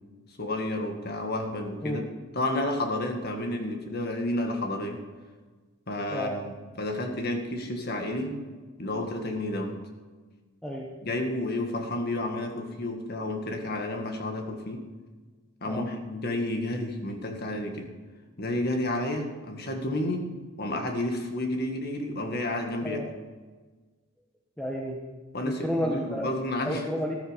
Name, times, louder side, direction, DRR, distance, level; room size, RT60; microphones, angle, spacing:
voice 1, 0.4-2.1 2.3-5.0 5.9-8.4 8.8-9.8 11.0-14.9 15.6-17.9 18.4-20.3 20.6-23.1 25.3-26.8, left 1 dB, 45° left, 4 dB, 1.9 m, -31 dB
voice 2, 6.1-6.4 10.6-10.9 15.6-15.9 22.8-23.1 24.6-25.0 25.4-26.3 26.7-27.2, equal, 5° left, -2 dB, 1.2 m, -31 dB
13.5 x 12.5 x 5.2 m, 1.4 s
head